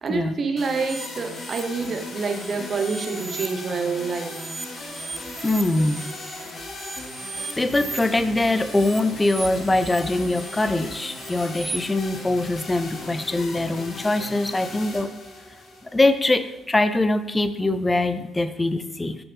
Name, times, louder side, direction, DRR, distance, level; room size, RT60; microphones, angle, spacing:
voice 1, 0.0-4.4, right 4 dB, 45° right, 5 dB, 1.1 m, -27 dB
sound 1, 0.6-16.6, left 2 dB, 50° left, 1.6 m, -38 dB
sound 2, 0.9-3.5 3.8-8.0 8.5-11.8, right 3 dB, 30° right, 0.6 m, -38 dB
voice 2, 5.4-6.1 7.6-15.1 15.8-19.2, left 2 dB, 20° left, 11 dB, 0.5 m, -23 dB
6.5 x 6.0 x 3.6 m, 0.95 s
supercardioid pair, 70°, 0 cm